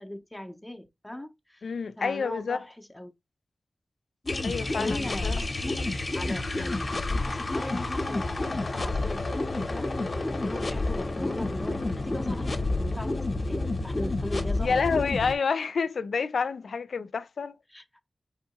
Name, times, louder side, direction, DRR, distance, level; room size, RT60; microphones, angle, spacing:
voice 1, 0.0-1.7 2.0-3.1 4.6-5.7 6.1-9.9 10.3-14.8 17.7-17.8, left 1 dB, 10° left, 0.5 m, -39 dB
voice 2, 1.6-2.6 4.4-5.4 14.6-17.6, left 5 dB, 85° left, 0.3 m, -28 dB
sound 1, 4.2-15.3, left 2 dB, 40° left, 0.7 m, -29 dB
4.5 x 3.5 x 2.8 m
wide cardioid pair, 125°, 0 cm